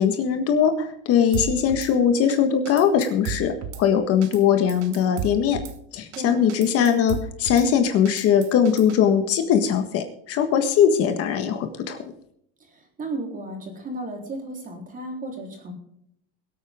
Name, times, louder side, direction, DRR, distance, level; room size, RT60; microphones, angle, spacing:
voice 1, 0.0-5.6 5.9-12.0, left 8 dB, 45° left, 7 dB, 1.6 m, -20 dB
Drum kit / Snare drum, 1.3-1.9 2.3-2.4 2.7-3.8 4.2-4.4 4.7-5.8 6.1-6.2 6.5-7.7 8.1-9.0, right 7 dB, 50° right, 1.4 m, -33 dB
voice 2, 13.0-15.7, right 2 dB, 25° right, 2 dB, 3.9 m, -34 dB
22.5 x 8.6 x 3.7 m, 0.70 s
supercardioid pair, 135°, 32 cm